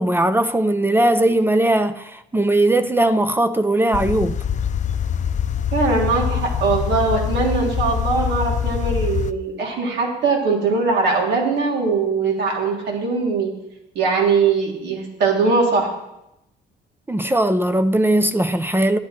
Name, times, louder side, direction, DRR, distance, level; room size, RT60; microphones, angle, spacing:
voice 1, 0.0-4.4 17.1-19.0, right 1 dB, 10° right, 0.5 m, -19 dB
sound 1, 3.9-9.3, left 8 dB, 45° left, 0.6 m, -24 dB
voice 2, 5.7-13.5 13.9-15.9, right 4 dB, 70° right, 3.2 m, -21 dB
12.5 x 10.0 x 4.4 m
cardioid pair, 100°, 18 cm